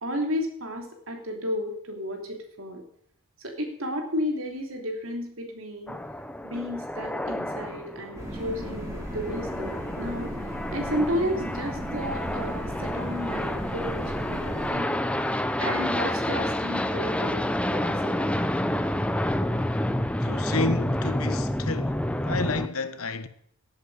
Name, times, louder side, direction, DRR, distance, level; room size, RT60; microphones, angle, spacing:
voice 1, 0.0-2.8 3.4-6.0 6.4-10.3 10.7-14.0 14.3-15.0 15.6-18.2, equal, 70° right, 3.1 m, -32 dB
sound 1, 5.9-22.7, left 1 dB, 5° left, 0.5 m, -29 dB
sound 2, 8.1-14.7, equal, 15° right, 3.6 m, -36 dB
voice 2, 20.2-23.3, left 3 dB, 85° left, 1.1 m, -30 dB
16.0 x 8.4 x 4.9 m
head